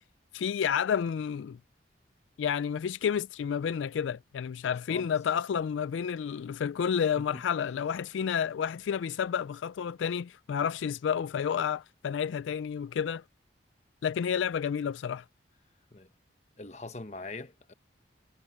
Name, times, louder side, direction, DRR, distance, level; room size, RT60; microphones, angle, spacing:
voice 1, 0.3-1.6 2.4-13.2 14.0-15.2, left 7 dB, 80° left, 0.3 m, -30 dB
voice 2, 16.6-17.7, left 3 dB, 35° left, 1.0 m, -42 dB
head